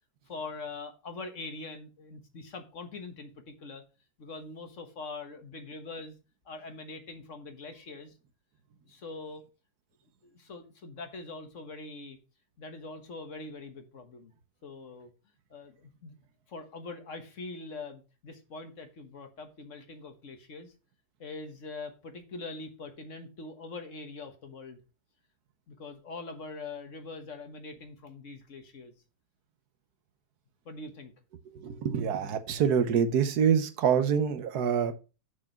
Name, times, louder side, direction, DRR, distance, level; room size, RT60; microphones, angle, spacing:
voice 1, 0.3-3.8 4.2-6.1 6.4-8.1 8.9-9.4 10.2-12.2 12.6-14.3 14.6-15.1 15.5-16.1 16.5-20.7 21.2-24.8 25.7-28.9 30.6-31.1, left 3 dB, 55° left, 1.5 m, -43 dB
voice 2, 31.5-34.9, right 7 dB, 80° right, 1.4 m, -26 dB
6.7 x 4.8 x 5.8 m
omnidirectional pair, 1.7 m